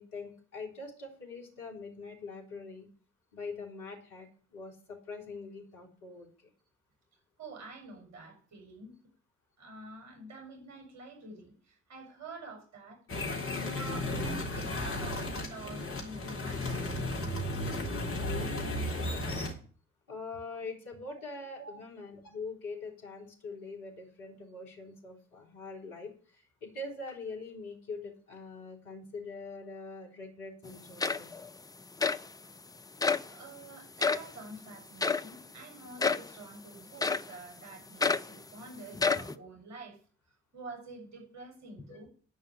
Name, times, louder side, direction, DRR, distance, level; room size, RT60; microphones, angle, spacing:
voice 1, 0.0-2.9 3.3-6.3 20.1-31.3 41.8-42.0, left 3 dB, 65° left, 0 dB, 3.5 m, -43 dB
voice 2, 7.4-8.9 9.6-13.0 13.5-17.1 20.5-20.6 21.6-21.8 32.4-32.6 33.3-40.0 40.5-42.1, right 3 dB, 50° right, 2 dB, 7.1 m, -48 dB
sound 1, 13.1-19.5, left 1 dB, 35° left, 3.7 m, -34 dB
sound 2, 30.7-30.8 31.0-31.5 32.0-32.3 33.0-33.3 34.0-34.3 35.0-35.3 36.0-36.3 37.0-37.3 38.0-38.3 38.9-39.3, left 4 dB, 10° left, 0.6 m, -29 dB
11.0 x 5.2 x 8.1 m, 0.42 s
figure-of-eight pair, 50°, 37 cm